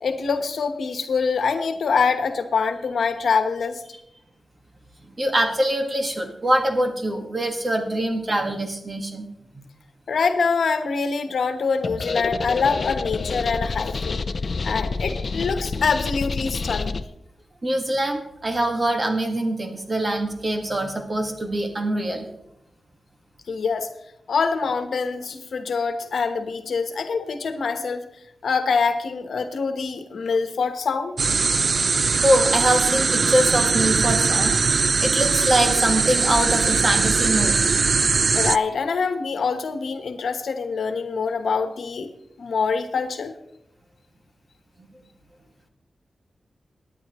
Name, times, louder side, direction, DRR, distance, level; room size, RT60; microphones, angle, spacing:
voice 1, 0.0-3.8 10.1-14.2 14.6-17.0 23.5-23.9 24.3-28.0 28.4-31.1 38.3-42.1 42.4-43.3, left 5 dB, 85° left, 8 dB, 1.1 m, -24 dB
voice 2, 5.2-9.3 9.5-9.6 17.6-22.3 32.2-34.5 35.0-37.7 44.8-44.9, right 1 dB, 30° right, 4 dB, 1.7 m, -23 dB
sound 1, 11.8-17.0, left 4 dB, 50° left, 0.6 m, -28 dB
sound 2, 31.2-38.6, right 4 dB, 55° right, 0.3 m, -20 dB
23.5 x 10.0 x 3.1 m, 0.85 s
wide cardioid pair, 125°, 0 cm